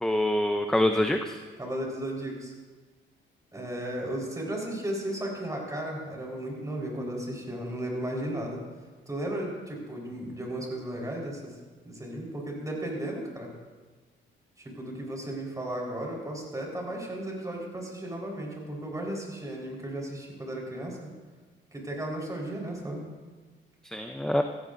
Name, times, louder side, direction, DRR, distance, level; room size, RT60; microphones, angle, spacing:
voice 1, 0.0-1.4 23.8-24.4, left 1 dB, 5° left, 6 dB, 0.6 m, -25 dB
voice 2, 1.6-2.5 3.5-8.6 9.1-11.5 11.8-13.5 14.7-21.1 21.7-23.1, right 1 dB, 15° right, -1 dB, 4.3 m, -35 dB
16.5 x 14.5 x 2.6 m, 1.4 s
cardioid pair, 90°, 20 cm